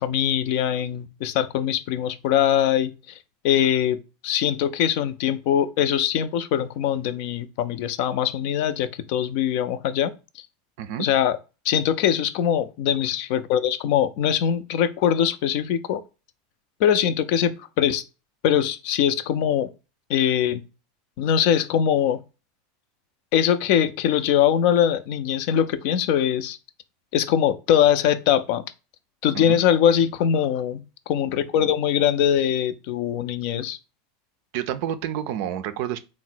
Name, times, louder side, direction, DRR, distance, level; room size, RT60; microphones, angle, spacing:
voice 1, 0.0-2.9 3.4-10.1 11.0-11.4 11.6-16.0 16.8-18.0 18.4-19.7 20.1-20.6 21.2-22.2 23.3-26.6 27.1-28.6 29.2-33.8, left 9 dB, 60° left, 0.4 m, -22 dB
voice 2, 34.5-36.0, right 10 dB, 60° right, 0.4 m, -29 dB
3.8 x 2.0 x 4.2 m
hypercardioid pair, 90°, 0 cm